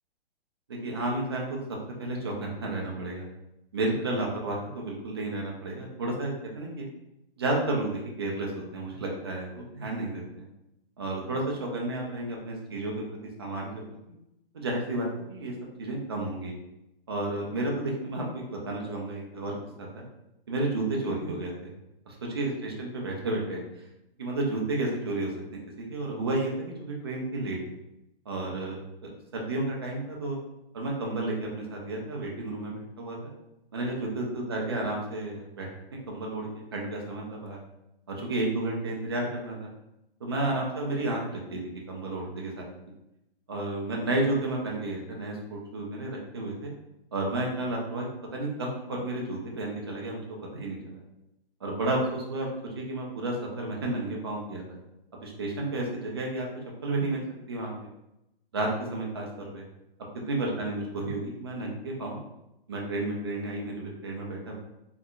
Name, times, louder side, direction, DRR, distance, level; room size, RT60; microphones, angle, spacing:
voice 1, 0.7-1.6 2.0-3.3 3.7-6.8 7.4-10.5 11.0-13.7 14.5-15.5 15.8-16.5 17.1-20.0 20.5-21.7 22.3-23.6 24.2-27.6 28.3-30.4 30.7-33.3 33.7-37.6 38.1-39.7 40.2-42.7 43.5-46.7 47.1-50.2 50.5-51.0 51.6-54.8 55.1-56.5 56.8-57.7 58.5-59.6 60.3-62.2 62.7-64.5, right 2 dB, 25° right, -1 dB, 0.4 m, -32 dB
3.5 x 2.8 x 2.4 m, 0.88 s
hypercardioid pair, 160°, 31 cm